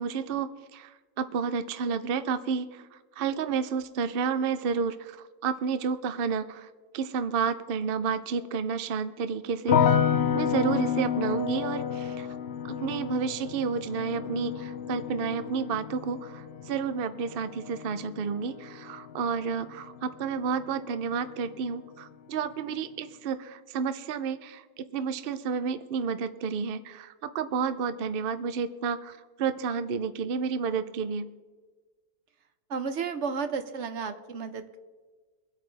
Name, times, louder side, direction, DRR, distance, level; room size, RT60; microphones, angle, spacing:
voice 1, 0.0-2.8 3.2-5.2 5.4-6.7 6.9-10.0 10.3-12.3 12.7-31.2, right 6 dB, 80° right, 12 dB, 0.5 m, -31 dB
sound 1, 9.7-20.7 21.0-21.8, left 8 dB, 65° left, 0.6 m, -30 dB
voice 2, 32.7-34.8, right 5 dB, 50° right, 8 dB, 1.0 m, -32 dB
24.0 x 8.5 x 3.3 m, 1.4 s
omnidirectional pair, 1.7 m